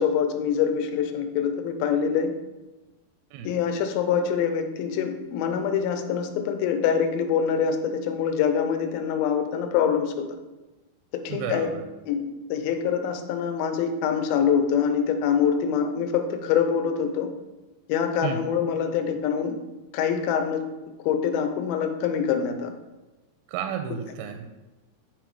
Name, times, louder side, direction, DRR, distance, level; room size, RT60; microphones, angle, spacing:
voice 1, 0.0-2.3 3.4-10.3 11.1-11.7 12.1-17.3 17.9-19.6 19.9-20.6 21.1-22.7, left 7 dB, 80° left, 7 dB, 2.4 m, -25 dB
voice 2, 11.3-11.8 18.2-18.5 23.5-24.5, right 8 dB, 80° right, 6 dB, 2.3 m, -32 dB
9.4 x 4.0 x 4.7 m, 1.1 s
omnidirectional pair, 4.6 m